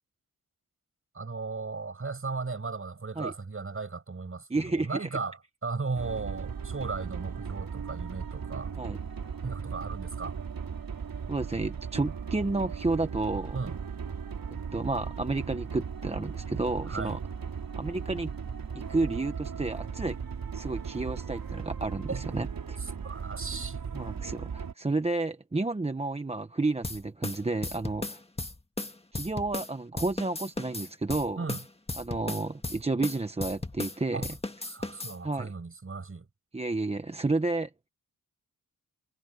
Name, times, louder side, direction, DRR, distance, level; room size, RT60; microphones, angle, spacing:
voice 1, 1.1-8.7 9.4-10.4 13.5-13.8 16.9-17.2 22.1-22.3 22.8-24.4 31.4-31.7 34.1-34.4 34.6-36.3, right 4 dB, 40° right, 7.7 m, -36 dB
voice 2, 4.5-5.2 8.8-9.0 11.3-13.6 14.5-17.2 17.8-18.3 18.7-20.2 20.5-22.8 23.9-28.2 29.1-31.5 32.0-34.3 35.2-35.5 36.5-37.7, right 2 dB, 20° right, 0.9 m, -31 dB
sound 1, 6.0-24.7, right 6 dB, 75° right, 4.0 m, -37 dB
sound 2, 26.8-29.7 30.0-34.0 34.2-35.2, left 2 dB, 15° left, 1.6 m, -35 dB
wide cardioid pair, 130°, 35 cm